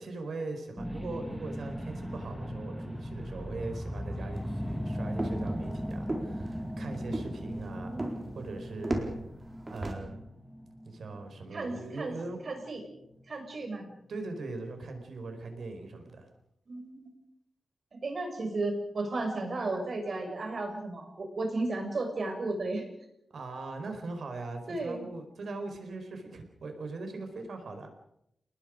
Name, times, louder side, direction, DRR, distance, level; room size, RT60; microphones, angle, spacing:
voice 1, 0.0-9.2 9.7-10.2 10.8-12.4 14.1-16.3 23.3-27.9, right 3 dB, 70° right, 5 dB, 4.9 m, -40 dB
sound 1, 0.8-13.4 13.9-14.0, equal, ahead, 2.0 m, -38 dB
sound 2, 4.3-9.9, right 1 dB, 25° right, 4.1 m, -37 dB
voice 2, 7.5-8.3 11.5-12.1 12.4-12.8 13.3-13.9 16.7-17.1 18.0-22.8 24.7-25.1, right 2 dB, 50° right, 3 dB, 6.8 m, -34 dB
30.0 x 20.0 x 5.2 m, 0.78 s
wide cardioid pair, 120°, 0 cm